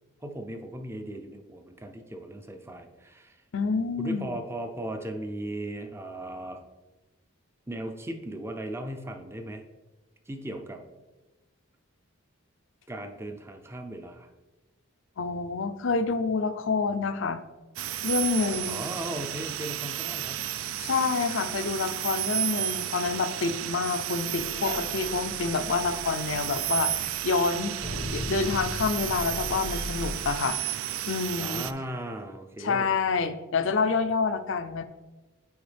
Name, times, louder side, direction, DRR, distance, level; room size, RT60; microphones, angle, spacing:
voice 1, 0.2-3.4 4.0-6.6 7.7-9.6 10.3-10.8 12.9-14.3 18.7-20.5 31.4-32.9, right 1 dB, 10° right, 5 dB, 0.5 m, -37 dB
voice 2, 3.5-4.3 15.2-17.4 18.0-18.8 20.8-27.8 28.1-30.6 31.1-31.7 32.6-34.8, left 4 dB, 60° left, 10 dB, 0.5 m, -28 dB
sound 1, 17.8-31.7, right 12 dB, 75° right, 0.4 m, -33 dB
sound 2, 24.2-30.4, equal, 45° right, 1.1 m, -38 dB
7.9 x 4.7 x 3.4 m, 1.2 s
head